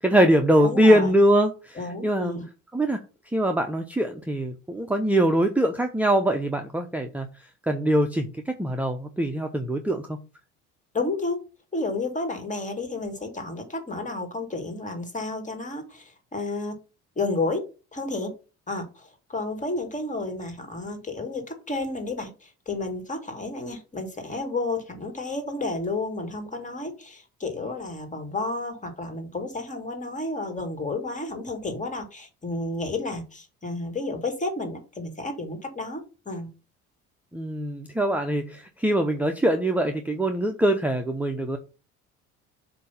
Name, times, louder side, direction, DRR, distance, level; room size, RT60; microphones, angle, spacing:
voice 1, 0.0-2.4 2.7-3.0 3.3-7.3 7.7-10.2 37.3-41.6, right 1 dB, 5° right, 4 dB, 0.7 m, -23 dB
voice 2, 0.6-1.1 1.8-2.5 10.9-11.4 11.7-16.8 17.2-17.6 17.9-18.3 18.7-36.5, left 2 dB, 25° left, 6 dB, 2.1 m, -31 dB
7.5 x 2.9 x 5.7 m, 0.33 s
cardioid pair, 95°, 31 cm